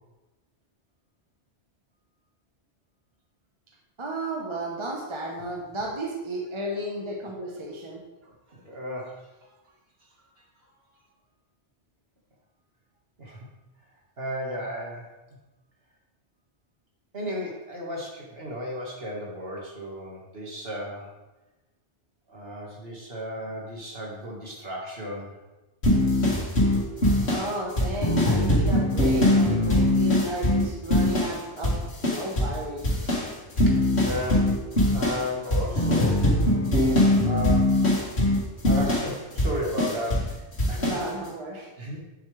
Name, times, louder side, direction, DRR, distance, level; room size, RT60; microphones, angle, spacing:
voice 1, 4.0-8.0 27.3-31.8 32.0-32.9 40.8-41.7, right 1 dB, 25° right, -1 dB, 1.1 m, -33 dB
voice 2, 8.2-9.3 10.4-10.5 13.2-13.5 14.2-15.1 17.1-21.1 22.3-25.4 33.5-34.6 34.9-38.1 38.6-41.0 41.8-42.1, left 1 dB, 55° right, -2 dB, 2.1 m, -35 dB
sound 1, 25.8-31.4 31.6-32.6 32.8-40.3 40.6-41.0, left 1 dB, 65° left, 2.2 m, -22 dB
9.3 x 7.5 x 3.4 m, 1.1 s
omnidirectional pair, 1.2 m